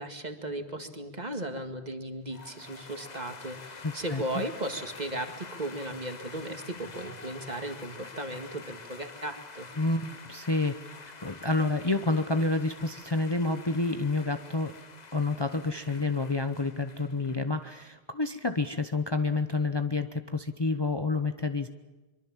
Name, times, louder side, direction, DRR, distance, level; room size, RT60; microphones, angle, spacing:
voice 1, 0.0-9.7, right 1 dB, 40° right, 6 dB, 2.2 m, -36 dB
sound 1, 2.3-17.8, left 4 dB, 45° left, 1.1 m, -47 dB
voice 2, 3.8-4.4 9.8-14.7 15.1-21.7, left 3 dB, 25° left, 8 dB, 0.9 m, -29 dB
24.0 x 24.0 x 7.4 m, 1.2 s
omnidirectional pair, 1.1 m